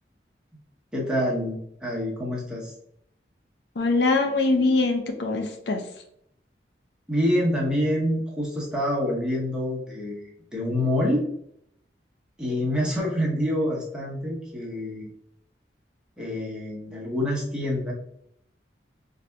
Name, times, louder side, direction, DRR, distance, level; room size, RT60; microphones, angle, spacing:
voice 1, 0.9-2.7 7.1-11.2 12.4-15.1 16.2-17.9, left 1 dB, 5° right, -5 dB, 0.8 m, -26 dB
voice 2, 3.8-5.8, left 3 dB, 75° left, 4 dB, 0.5 m, -23 dB
4.0 x 2.6 x 2.2 m, 0.72 s
head